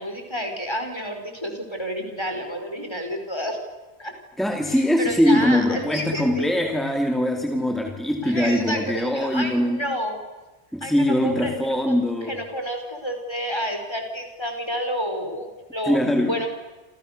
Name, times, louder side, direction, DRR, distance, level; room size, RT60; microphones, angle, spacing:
voice 1, 0.0-3.6 4.0-4.1 4.7-6.5 8.2-10.2 10.8-11.5 11.8-16.5, equal, 25° left, 4 dB, 5.2 m, -30 dB
voice 2, 4.4-9.8 10.7-12.3 15.9-16.4, left 1 dB, ahead, 3 dB, 2.8 m, -22 dB
29.0 x 27.5 x 6.9 m, 1.2 s
omnidirectional pair, 1.0 m